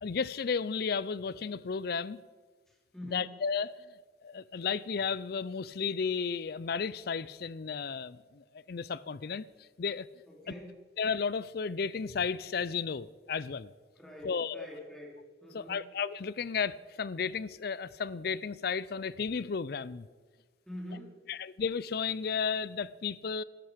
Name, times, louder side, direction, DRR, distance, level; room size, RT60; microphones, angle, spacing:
voice 1, 0.0-2.2 3.1-3.9 4.2-10.1 10.5-10.6 11.0-13.7 14.2-14.7 15.5-20.1 21.3-23.4, left 5 dB, 60° left, 0.5 m, -33 dB
voice 2, 2.7-3.4 10.3-10.8 14.0-15.2 15.4-15.9 20.7-21.2, left 1 dB, 5° left, 2.8 m, -45 dB
14.0 x 12.0 x 5.1 m
head